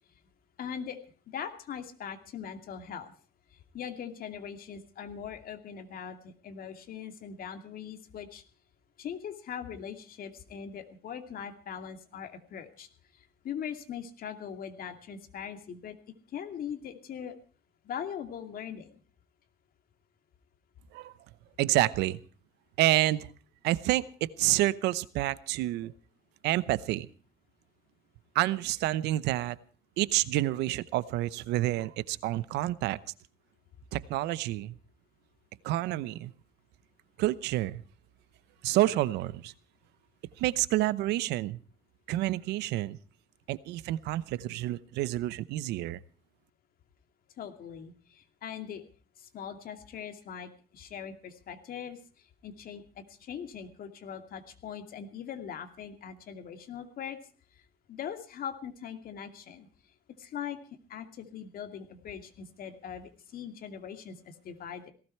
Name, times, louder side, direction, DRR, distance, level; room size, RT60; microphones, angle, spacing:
voice 1, 0.6-1.0 1.3-3.1 3.7-8.4 9.0-12.9 13.4-16.0 16.3-17.4 17.8-19.0 47.4-48.9 49.2-52.0 52.4-57.2 57.9-59.7 60.2-60.6 60.9-64.9, left 8 dB, 60° left, 7 dB, 2.5 m, -41 dB
voice 2, 21.6-22.2 22.8-23.3 23.6-25.9 26.4-27.1 28.3-29.6 30.0-33.0 33.9-34.7 35.6-36.3 37.2-37.8 38.6-39.5 40.4-41.6 42.1-43.0 43.5-46.0, right 15 dB, 85° right, 17 dB, 0.9 m, -28 dB
18.0 x 16.5 x 4.6 m, 0.39 s
cardioid pair, 110°, 17 cm